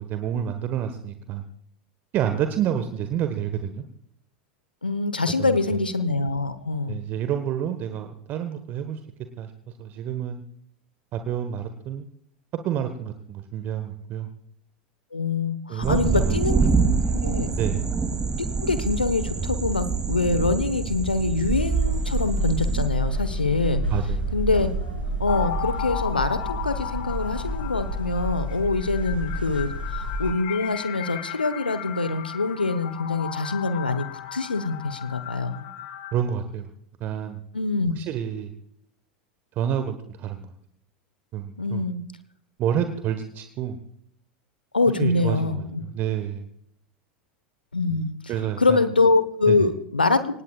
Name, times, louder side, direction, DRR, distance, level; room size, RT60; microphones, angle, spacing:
voice 1, 0.0-1.4 2.1-3.8 5.3-5.8 6.9-9.0 9.4-9.5 9.8-10.4 11.1-12.1 12.6-14.3 15.7-16.4 16.7-16.9 17.6-17.8 23.9-24.3 36.1-36.7 37.0-37.4 38.0-38.5 39.5-40.5 41.3-41.9 42.6-43.8 45.0-46.5 47.9-48.0 48.3-48.9 49.5-49.7, right 9 dB, 40° right, 8 dB, 1.3 m, -29 dB
voice 2, 4.8-7.0 15.1-16.6 17.1-17.5 18.6-23.8 24.3-24.7 25.2-34.1 34.3-35.6 37.5-37.9 41.6-42.0 44.7-45.8 47.7-48.1 48.6-50.2, left 3 dB, 85° left, 12 dB, 1.1 m, -24 dB
sound 1, 15.8-22.9, right 5 dB, 15° right, 2.7 m, -25 dB
sound 2, 21.4-30.3, right 1 dB, 90° right, 5.3 m, -29 dB
sound 3, 25.3-36.2, left 11 dB, 55° left, 1.9 m, -36 dB
25.5 x 19.0 x 2.4 m, 0.70 s
figure-of-eight pair, 85°, 5 cm